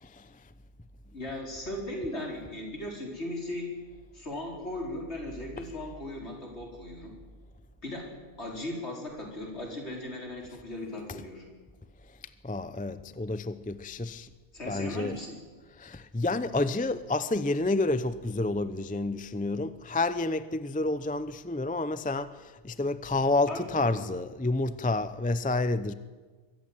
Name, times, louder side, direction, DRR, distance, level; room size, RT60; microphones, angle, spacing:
voice 1, 1.1-3.7 4.1-7.1 7.8-8.1 8.4-11.5 14.5-15.4 23.5-24.0, left 1 dB, 65° left, 4.9 m, -37 dB
voice 2, 12.4-14.3 14.7-15.1 15.8-25.9, left 2 dB, 10° left, 0.5 m, -29 dB
23.0 x 15.0 x 9.1 m
omnidirectional pair, 1.2 m